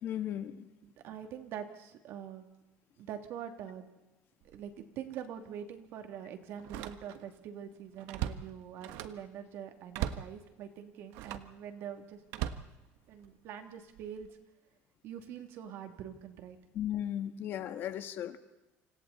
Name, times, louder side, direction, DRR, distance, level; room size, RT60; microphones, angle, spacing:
voice 1, 0.0-0.7 16.7-18.4, left 11 dB, 50° left, 9 dB, 1.6 m, -36 dB
voice 2, 0.8-2.5 3.0-3.9 4.5-12.2 13.1-14.3 15.0-16.6, right 9 dB, 60° right, 5 dB, 2.8 m, -44 dB
Slam, 4.4-4.7 5.1-5.3 6.6-7.4 7.7-9.3 9.9-10.4 11.1-11.6 12.3-13.4 14.0-14.3, right 12 dB, 85° right, 1.4 m, -39 dB
28.5 x 26.5 x 4.2 m, 1.0 s
cardioid pair, 155°, 5 cm